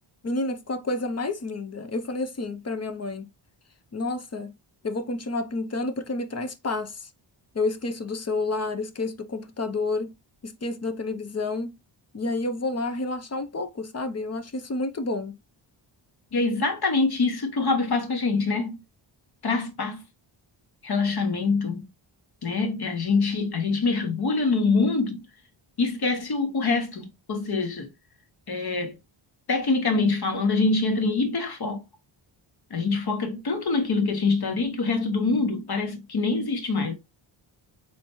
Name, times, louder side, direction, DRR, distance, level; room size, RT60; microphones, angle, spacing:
voice 1, 0.2-3.3 3.9-4.5 4.8-7.1 7.5-10.1 10.4-11.8 12.1-15.4, left 2 dB, 30° left, 0.7 m, -30 dB
voice 2, 16.3-18.8 19.4-20.0 20.8-21.9 22.4-25.3 25.8-27.9 28.5-29.0 29.5-31.8 32.7-36.9, left 3 dB, 50° left, 1.3 m, -25 dB
3.9 x 3.3 x 3.1 m
cardioid pair, 60°, 49 cm